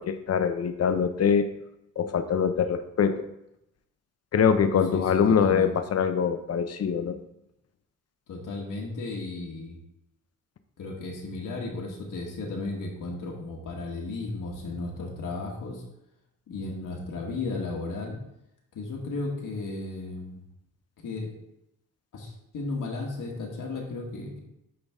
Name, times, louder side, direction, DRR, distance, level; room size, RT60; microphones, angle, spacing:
voice 1, 0.0-1.5 2.0-3.3 4.3-7.2, left 7 dB, 50° left, 9 dB, 0.8 m, -24 dB
voice 2, 4.9-5.7 8.3-9.8 10.8-15.8 16.5-18.2 18.7-20.4 21.0-21.3 22.1-24.4, left 3 dB, 70° left, -1 dB, 1.7 m, -34 dB
8.8 x 3.9 x 3.6 m, 0.81 s
cardioid pair, 75°, 33 cm